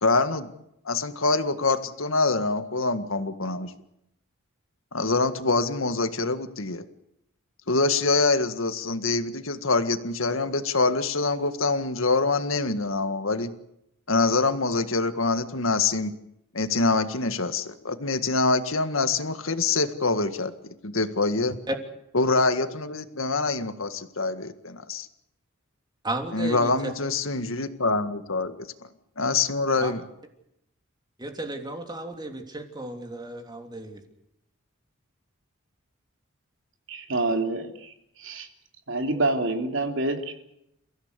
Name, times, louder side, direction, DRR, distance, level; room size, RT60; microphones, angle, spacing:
voice 1, 0.0-0.5 0.9-3.7 4.9-6.8 7.7-13.5 14.1-16.1 16.5-21.6 22.1-25.1 26.3-28.7 29.2-30.0, left 3 dB, 75° left, 10 dB, 1.8 m, -25 dB
voice 2, 26.0-26.9 29.8-29.9 31.2-34.0, right 1 dB, 20° right, 4 dB, 3.2 m, -33 dB
voice 3, 36.9-37.9 38.2-38.5 38.9-40.3, right 2 dB, 65° right, 5 dB, 3.3 m, -27 dB
29.5 x 16.0 x 8.3 m, 0.79 s
head